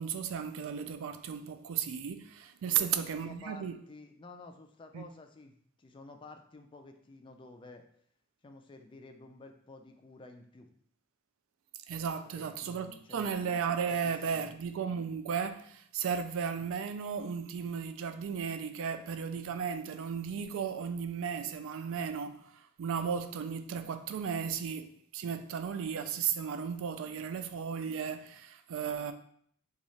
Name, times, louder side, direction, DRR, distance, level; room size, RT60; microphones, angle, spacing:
voice 1, 0.0-3.7 4.9-5.0 11.9-29.1, right 7 dB, 65° right, 0.3 m, -35 dB
voice 2, 2.6-7.8 8.4-10.7 12.3-13.3 13.9-14.5, left 2 dB, 25° left, 0.3 m, -52 dB
3.1 x 2.4 x 3.9 m
head